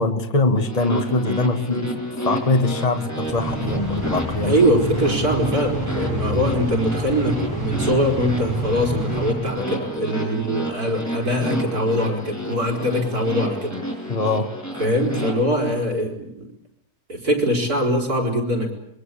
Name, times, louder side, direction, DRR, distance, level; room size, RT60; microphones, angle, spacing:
voice 1, 0.0-4.6 5.0-5.2 14.1-14.5, left 3 dB, 25° left, 6 dB, 1.8 m, -22 dB
sound 1, 0.6-15.3, equal, 10° left, 7.4 m, -30 dB
sound 2, 3.2-10.0, right 1 dB, 15° right, 4.2 m, -28 dB
voice 2, 4.4-13.8 14.8-16.5 17.1-18.7, equal, 85° right, 1 dB, 5.4 m, -22 dB
25.5 x 22.5 x 8.5 m, 0.72 s
omnidirectional pair, 1.6 m